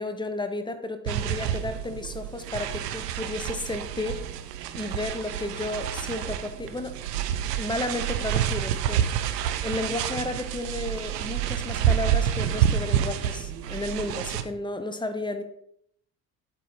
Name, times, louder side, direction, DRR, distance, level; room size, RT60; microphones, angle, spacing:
voice 1, 0.0-4.2 4.7-7.0 7.6-15.4, left 2 dB, 10° left, 10 dB, 0.7 m, -33 dB
sound 1, 1.1-14.4, right 10 dB, 75° right, 0.6 m, -28 dB
7.6 x 5.1 x 3.0 m, 0.69 s
figure-of-eight pair, 55°, 48 cm